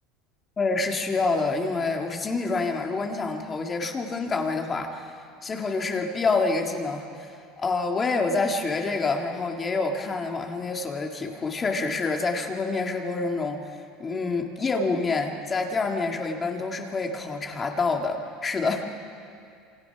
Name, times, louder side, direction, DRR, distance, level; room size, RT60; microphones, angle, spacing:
voice 1, 0.6-5.1 5.4-13.6 14.0-18.9, left 3 dB, 15° left, 3 dB, 1.9 m, -27 dB
27.5 x 25.5 x 5.8 m, 2.4 s
cardioid pair, 175°, 0 cm